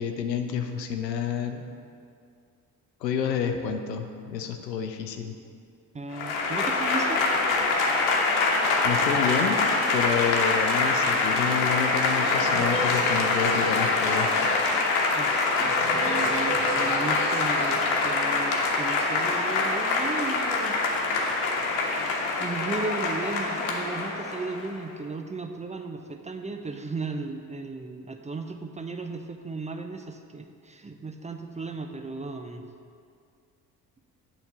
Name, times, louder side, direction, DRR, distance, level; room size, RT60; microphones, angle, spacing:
voice 1, 0.0-1.6 3.0-5.3 8.8-9.6 9.9-14.5, left 7 dB, 80° left, 6 dB, 0.7 m, -29 dB
voice 2, 5.9-7.2 15.2-20.8 22.4-32.6, right 3 dB, 15° right, 5 dB, 0.6 m, -35 dB
Applause / Crowd, 6.1-24.7, left 3 dB, 65° left, 1.2 m, -24 dB
9.2 x 3.9 x 7.0 m, 2.3 s
figure-of-eight pair, 45°, 49 cm